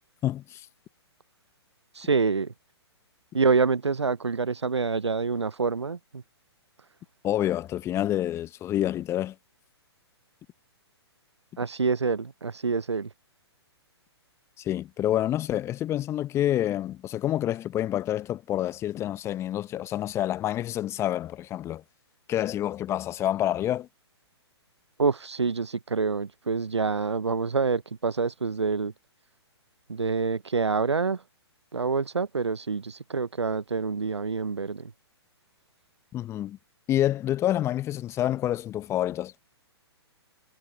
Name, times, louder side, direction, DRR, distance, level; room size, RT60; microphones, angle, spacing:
voice 1, 0.2-0.7 7.2-9.3 14.6-21.8 22.3-23.9 36.1-36.6 36.9-39.3, left 12 dB, 20° left, 0.9 m, -28 dB
voice 2, 1.9-2.5 3.3-6.2 11.6-13.1 25.0-28.9 29.9-31.2 31.7-34.9, right 4 dB, 85° right, 0.7 m, -26 dB
figure-of-eight pair, 120°, 14 cm